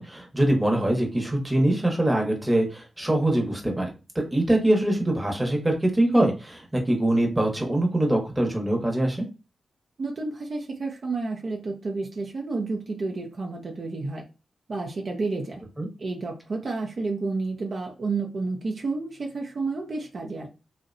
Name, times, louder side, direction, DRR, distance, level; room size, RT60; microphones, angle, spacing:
voice 1, 0.0-3.9 4.1-9.3 15.8-15.9, right 1 dB, 15° right, 1 dB, 0.8 m, -23 dB
voice 2, 10.0-14.2 14.7-15.6 16.0-20.5, right 3 dB, 60° right, 1 dB, 0.5 m, -30 dB
2.7 x 2.1 x 2.5 m, 0.30 s
cardioid pair, 70°, 0 cm